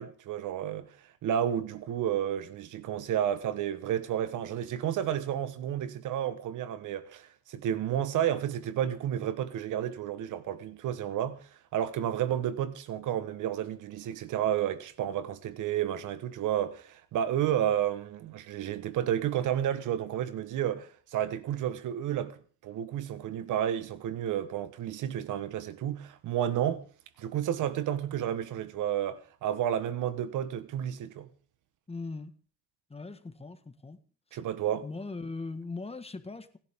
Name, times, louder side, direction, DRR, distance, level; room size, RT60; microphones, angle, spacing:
voice 1, 0.0-11.4 11.7-26.8 27.2-31.3 34.3-34.8, right 10 dB, 80° right, 1.4 m, -31 dB
voice 2, 31.9-32.3 32.9-34.0 34.3-34.4 34.8-36.6, left 3 dB, 20° left, 1.7 m, -39 dB
28.0 x 10.5 x 3.7 m
cardioid pair, 90°, 30 cm